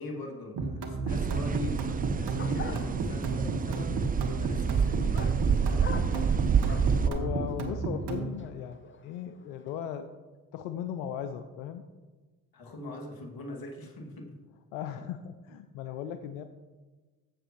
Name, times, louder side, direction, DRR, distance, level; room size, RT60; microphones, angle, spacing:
voice 1, 0.0-6.0 12.5-14.4, left 2 dB, 50° left, 2 dB, 2.4 m, -42 dB
sound 1, 0.6-8.3, right 4 dB, 60° right, 1.6 m, -33 dB
sound 2, 1.1-7.1, right 6 dB, 20° right, 0.4 m, -28 dB
sound 3, 2.4-9.9, left 4 dB, 25° left, 0.8 m, -46 dB
voice 2, 6.7-10.1 10.5-11.8 14.7-16.4, left 9 dB, 85° left, 9 dB, 0.6 m, -37 dB
14.0 x 7.2 x 3.1 m, 1.3 s
hypercardioid pair, 50°, 45 cm